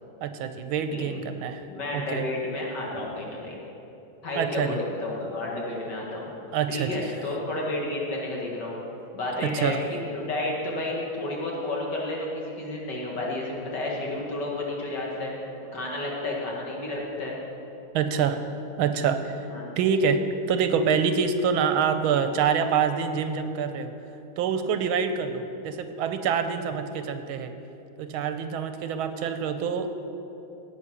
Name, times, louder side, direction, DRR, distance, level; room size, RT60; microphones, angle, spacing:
voice 1, 0.2-1.6 1.9-2.2 4.4-4.8 6.5-7.0 9.4-9.8 17.9-18.4 18.8-19.5 19.8-20.2 20.5-23.9 24.4-27.5 28.0-29.9, right 6 dB, 90° right, 9 dB, 1.5 m, -26 dB
voice 2, 1.7-3.5 4.2-6.3 6.7-8.8 9.1-9.8 10.1-15.3 15.7-17.4 19.5-19.7, left 2 dB, 55° left, -3 dB, 2.5 m, -31 dB
17.0 x 6.0 x 6.2 m, 2.9 s
omnidirectional pair, 2.2 m